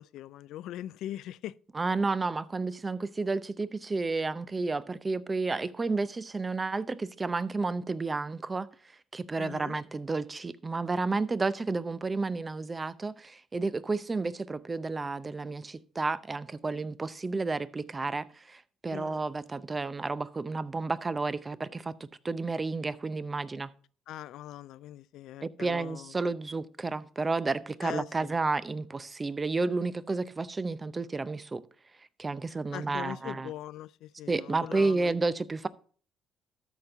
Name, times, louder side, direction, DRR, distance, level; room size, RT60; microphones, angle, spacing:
voice 1, 0.0-1.5 9.4-9.8 18.9-19.1 24.1-26.1 27.8-28.1 32.7-35.1, left 13 dB, 75° left, 0.3 m, -41 dB
voice 2, 1.7-8.7 9.1-23.7 25.4-31.6 32.2-33.5 34.3-35.7, right 3 dB, 25° right, 0.7 m, -31 dB
13.0 x 4.4 x 4.8 m
supercardioid pair, 75°, 0 cm